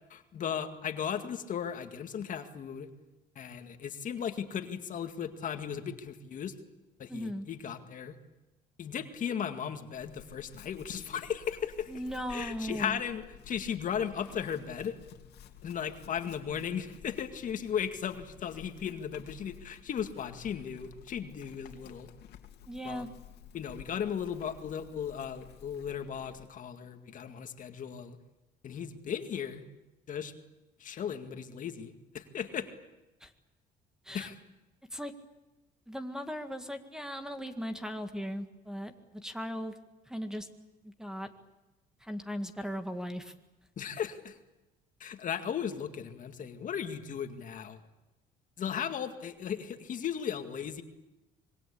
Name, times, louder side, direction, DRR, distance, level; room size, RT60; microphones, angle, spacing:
voice 1, 0.1-2.9 3.4-6.5 7.0-8.2 8.8-11.9 12.3-15.0 15.6-22.1 22.8-23.0 23.5-28.2 28.6-29.6 30.1-30.3 30.8-32.7 34.1-34.4 43.8-44.4 45.0-47.8 48.6-50.8, left 8 dB, 50° left, 7 dB, 2.1 m, -36 dB
voice 2, 7.1-7.5 11.9-13.0 22.7-23.1 33.2-33.3 34.0-34.3 34.9-35.1 35.9-39.7 40.1-40.5 40.8-41.3 42.0-43.3, equal, 5° right, 8 dB, 1.9 m, -38 dB
Chewing mastication / Livestock farm animals working animals, 9.9-26.5, left 10 dB, 75° left, 2.6 m, -53 dB
25.5 x 22.0 x 8.6 m, 1.0 s
cardioid pair, 110°, 17 cm